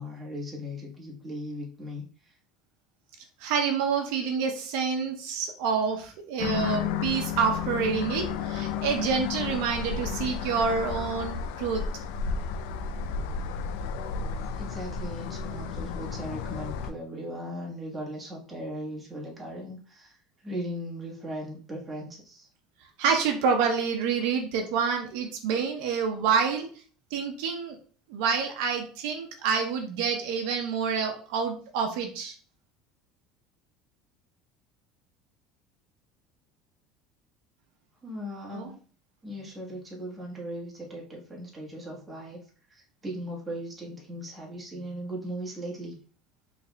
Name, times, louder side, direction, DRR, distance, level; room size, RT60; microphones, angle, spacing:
voice 1, 0.0-2.3 14.5-22.5 38.0-38.7 39.2-42.4 42.7-46.0, equal, 10° right, -3 dB, 1.4 m, -38 dB
voice 2, 3.4-11.8 23.0-26.7 27.1-27.8 28.1-32.3 38.5-38.7, right 6 dB, 75° right, 3 dB, 0.8 m, -28 dB
sound 1, 6.4-16.9, left 6 dB, 85° left, 0.4 m, -32 dB
4.7 x 3.4 x 2.2 m, 0.41 s
cardioid pair, 145°, 0 cm